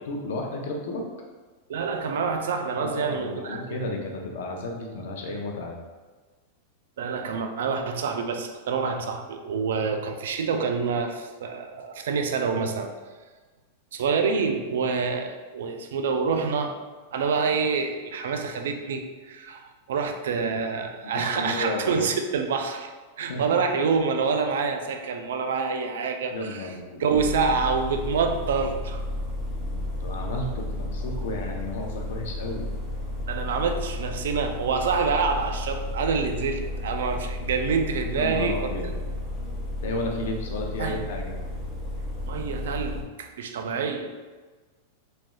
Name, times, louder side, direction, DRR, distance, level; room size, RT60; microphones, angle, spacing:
voice 1, 0.1-1.0 2.8-5.8 21.0-22.1 23.3-23.7 26.3-27.0 29.7-32.7 38.1-38.9 39.8-41.3, left 2 dB, 75° left, 0 dB, 0.6 m, -32 dB
voice 2, 1.7-3.8 7.0-12.9 13.9-16.8 17.1-22.9 23.2-26.7 27.0-29.0 33.3-38.7 40.8-41.0 42.3-44.1, right 5 dB, 80° right, 5 dB, 0.3 m, -27 dB
sound 1, 27.1-43.0, left 1 dB, 5° left, 0.8 m, -33 dB
3.1 x 2.6 x 2.3 m, 1.3 s
hypercardioid pair, 130°, 0 cm